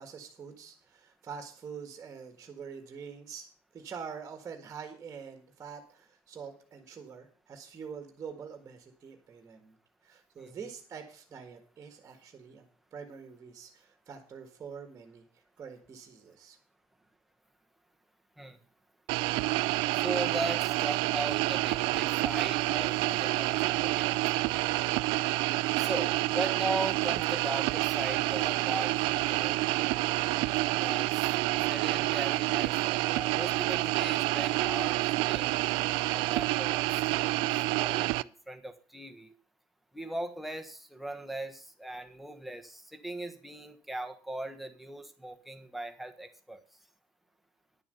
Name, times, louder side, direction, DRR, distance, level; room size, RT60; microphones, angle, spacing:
voice 1, 0.0-3.5 3.7-9.8 10.0-12.6 12.9-16.6, right 6 dB, 25° right, 5 dB, 1.7 m, -45 dB
sound 1, 19.1-38.2, right 20 dB, 85° right, 0.4 m, -28 dB
voice 2, 19.9-24.1 25.8-29.9 30.7-31.2 31.7-35.6 36.1-37.5 37.8-39.3 39.9-46.6, right 1 dB, ahead, 4 dB, 1.2 m, -39 dB
10.5 x 7.1 x 6.8 m, 0.42 s
cardioid pair, 155°, 8 cm